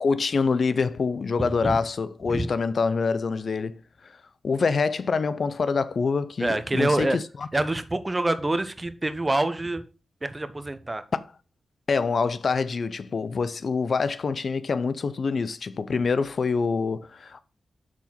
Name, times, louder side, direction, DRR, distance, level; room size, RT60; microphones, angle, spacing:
voice 1, 0.0-3.8 4.0-4.1 4.4-7.5 11.9-17.4, left 4 dB, 65° left, 0.5 m, -25 dB
voice 2, 1.4-1.8 2.3-2.5 6.4-7.2 7.5-9.8 10.2-11.0, right 2 dB, 25° right, 0.9 m, -26 dB
6.1 x 4.1 x 5.8 m
supercardioid pair, 45°, 0 cm